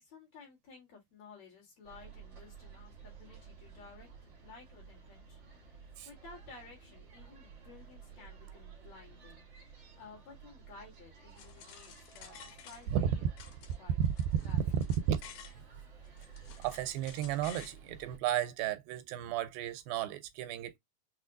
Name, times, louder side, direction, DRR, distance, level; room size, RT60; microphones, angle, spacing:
voice 1, 0.0-9.4 10.0-13.3 13.8-14.0 14.4-14.7, left 4 dB, 55° left, 2.4 m, -55 dB
sound 1, 1.8-18.2, right 6 dB, 65° right, 1.1 m, -53 dB
sound 2, 11.4-13.1 13.4-15.6 16.0-17.8, left 8 dB, 85° left, 2.7 m, -53 dB
voice 2, 16.6-20.8, right 11 dB, 85° right, 2.3 m, -34 dB
6.0 x 2.3 x 2.5 m
omnidirectional pair, 4.2 m